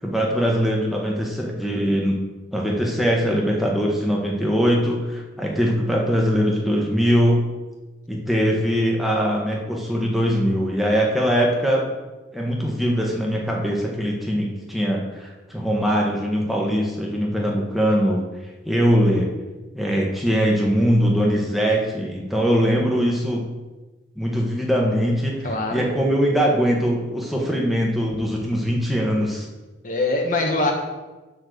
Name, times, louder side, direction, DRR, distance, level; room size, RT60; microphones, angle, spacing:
voice 1, 0.0-2.1 2.5-7.4 8.1-11.9 12.3-18.2 18.6-19.3 19.7-23.4 24.1-29.5, equal, ahead, -2 dB, 1.5 m, -21 dB
voice 2, 25.4-25.9 29.8-30.7, left 2 dB, 40° left, 1 dB, 1.2 m, -23 dB
10.5 x 4.3 x 6.7 m, 1.2 s
head